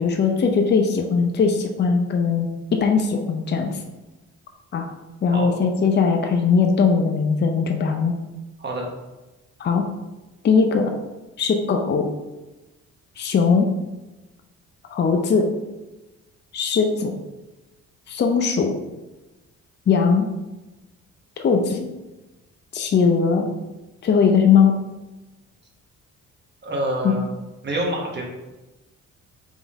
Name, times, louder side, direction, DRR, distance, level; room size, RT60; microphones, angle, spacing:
voice 1, 0.0-3.8 4.7-4.9 5.2-8.1 9.6-9.8 10.4-10.9 11.4-12.1 13.2-13.7 14.9-15.5 16.5-17.1 18.1-18.7 19.9-20.3 21.4-21.9 22.7-23.5 24.0-24.7 27.0-27.1, left 5 dB, 35° left, 4 dB, 0.5 m, -19 dB
voice 2, 26.6-27.3 27.6-28.2, right 1 dB, 35° right, -1 dB, 1.2 m, -26 dB
3.7 x 3.5 x 4.1 m, 1.1 s
cardioid pair, 90°, 30 cm